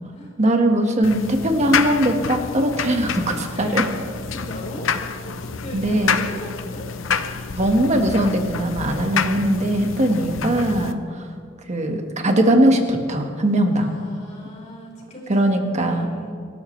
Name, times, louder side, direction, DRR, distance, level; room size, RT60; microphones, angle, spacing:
voice 1, 0.4-3.9 5.7-6.2 7.6-11.0 11.7-13.9 15.3-16.1, right 1 dB, 35° right, 4 dB, 1.6 m, -20 dB
sound 1, 1.0-10.9, left 6 dB, 85° left, 0.7 m, -28 dB
voice 2, 3.5-3.9 4.3-4.9 5.2-6.9 10.0-11.0 13.7-16.3, equal, 35° left, -2 dB, 4.4 m, -38 dB
27.0 x 13.0 x 3.3 m, 2.2 s
head